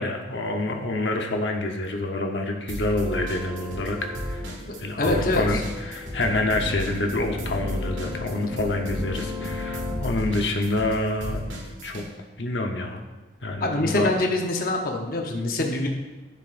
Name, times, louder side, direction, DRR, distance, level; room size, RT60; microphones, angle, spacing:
voice 1, 0.0-4.4 4.8-11.4 11.8-12.0 12.4-13.0 13.4-14.1, left 2 dB, 75° left, 3 dB, 1.0 m, -27 dB
sound 1, 2.7-3.9 4.1-12.1, equal, 90° right, 2.3 m, -33 dB
sound 2, 3.0-10.2, left 2 dB, 30° right, 2.4 m, -36 dB
voice 2, 5.0-5.4 13.6-15.9, left 2 dB, 50° left, 1 dB, 0.9 m, -24 dB
13.5 x 7.6 x 2.6 m, 1.2 s
head